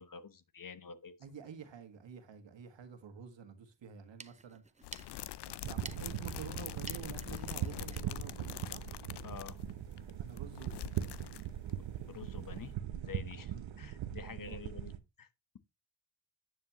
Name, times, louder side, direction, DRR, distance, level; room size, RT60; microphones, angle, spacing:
voice 1, 0.0-1.2 9.2-9.6 12.1-14.9 15.2-15.3, left 6 dB, 45° left, 1.1 m, -48 dB
voice 2, 1.2-4.6 5.5-8.9 10.2-11.1 13.5-13.7 14.2-14.6, right 7 dB, 75° right, 1.8 m, -49 dB
sound 1, 3.9-9.2, right 3 dB, 15° right, 0.7 m, -54 dB
sound 2, 4.8-11.9 12.1-12.2 12.5-12.7, left 13 dB, 60° left, 0.6 m, -45 dB
sound 3, 5.6-15.0, right 11 dB, 90° right, 0.9 m, -41 dB
9.2 x 7.6 x 3.0 m
cardioid pair, 65°, 45 cm